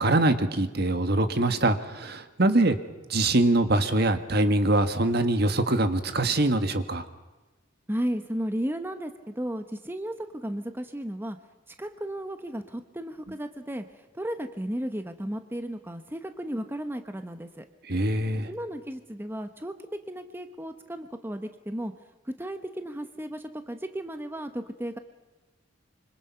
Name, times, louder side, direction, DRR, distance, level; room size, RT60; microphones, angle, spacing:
voice 1, 0.0-2.8 3.1-7.0 17.9-18.5, right 2 dB, 55° right, 9 dB, 1.6 m, -23 dB
voice 2, 7.9-11.4 11.8-13.8 14.1-17.6 18.5-19.7 20.1-21.9 22.4-25.0, equal, 10° right, 7 dB, 1.1 m, -34 dB
26.0 x 25.5 x 5.8 m, 1.2 s
head